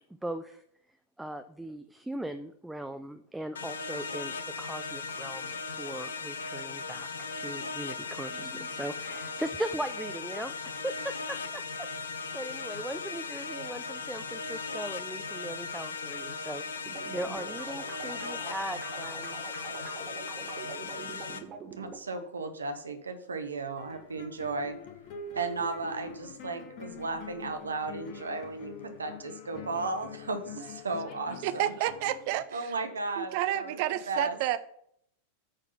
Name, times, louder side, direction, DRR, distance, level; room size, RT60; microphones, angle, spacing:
voice 1, 0.2-0.6 1.2-19.4 19.7-20.1, right 1 dB, 5° right, 0.5 m, -39 dB
sound 1, 3.5-21.4, left 4 dB, 70° left, 0.7 m, -38 dB
sound 2, 16.8-22.0, right 5 dB, 30° right, 1.2 m, -45 dB
voice 2, 21.8-24.7 25.3-31.7 32.5-33.8 34.1-34.4, right 3 dB, 75° right, 1.1 m, -35 dB
sound 3, 23.8-32.4, left 5 dB, 45° left, 1.3 m, -45 dB
voice 3, 31.4-32.7 33.2-34.6, right 13 dB, 45° right, 0.6 m, -30 dB
8.9 x 3.9 x 5.8 m
figure-of-eight pair, 90°, 0 cm